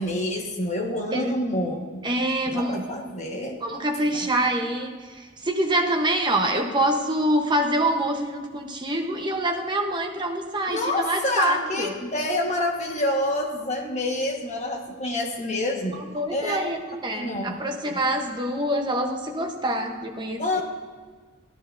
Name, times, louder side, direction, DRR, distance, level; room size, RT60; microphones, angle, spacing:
voice 1, 0.0-2.0 2.5-3.6 4.1-4.3 10.7-16.0 16.3-16.6 17.1-17.6 17.9-18.0 20.4-20.6, left 1 dB, 30° left, 0 dB, 1.3 m, -27 dB
voice 2, 2.0-2.9 3.6-12.0 16.1-20.6, right 1 dB, 20° right, 2 dB, 0.9 m, -25 dB
14.5 x 10.5 x 2.6 m, 1.5 s
head